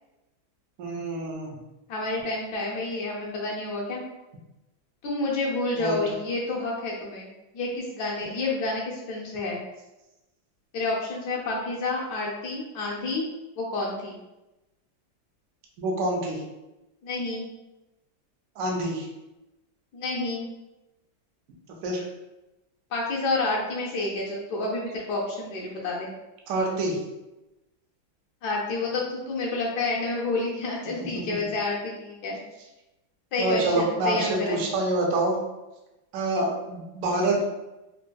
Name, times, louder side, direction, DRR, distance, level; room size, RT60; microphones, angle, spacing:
voice 1, 0.8-1.6 5.8-6.0 15.8-16.4 18.6-19.1 21.8-22.1 26.5-27.0 33.4-35.4 36.1-37.4, right 2 dB, 85° right, -1 dB, 0.7 m, -26 dB
voice 2, 1.9-4.0 5.0-9.6 10.7-13.3 13.6-14.2 17.0-17.5 19.9-20.5 22.9-26.1 28.4-32.4 33.3-34.6, left 2 dB, 70° left, -3 dB, 1.0 m, -29 dB
3.3 x 2.7 x 2.2 m, 0.99 s
omnidirectional pair, 2.2 m